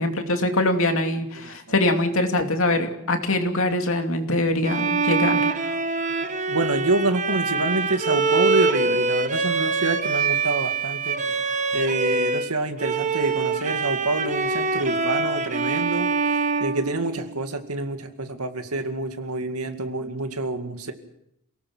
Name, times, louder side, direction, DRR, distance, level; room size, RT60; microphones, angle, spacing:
voice 1, 0.0-5.4, left 2 dB, 65° left, 5 dB, 2.7 m, -23 dB
Bowed string instrument, 4.6-12.5 12.8-17.6, right 4 dB, 35° right, 1.5 m, -24 dB
voice 2, 6.2-16.1 16.6-20.9, right 2 dB, 90° right, 7 dB, 2.2 m, -27 dB
28.0 x 18.5 x 6.2 m, 0.79 s
head